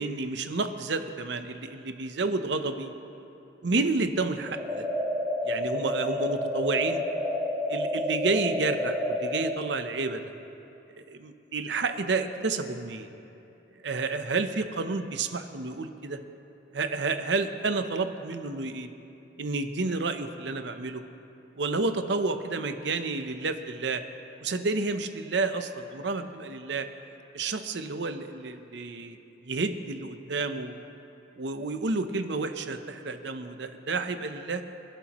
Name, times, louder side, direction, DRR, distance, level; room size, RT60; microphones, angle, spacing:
voice 1, 0.0-2.9 3.6-4.9 5.4-7.0 7.7-10.2 11.1-13.1 13.8-16.2 16.7-18.9 19.4-21.0 21.6-24.0 24.4-26.9 27.3-29.2 29.4-30.8 31.4-34.6, right 3 dB, 70° right, 8 dB, 0.7 m, -30 dB
sound 1, 4.5-9.5, left 1 dB, 15° right, 3.8 m, -29 dB
27.5 x 11.5 x 3.0 m, 2.9 s
head